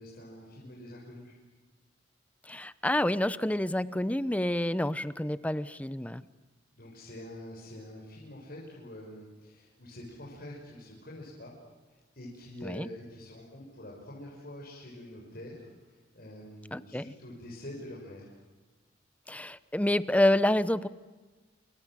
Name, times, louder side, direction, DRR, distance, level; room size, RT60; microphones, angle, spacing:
voice 1, 0.0-1.3 6.7-11.5 12.1-15.7 16.1-18.3, left 1 dB, 55° left, -4 dB, 6.3 m, -45 dB
voice 2, 2.5-6.2 12.6-12.9 16.7-17.1 19.3-20.9, left 1 dB, 10° left, 15 dB, 0.8 m, -28 dB
28.0 x 26.5 x 7.7 m, 1.3 s
head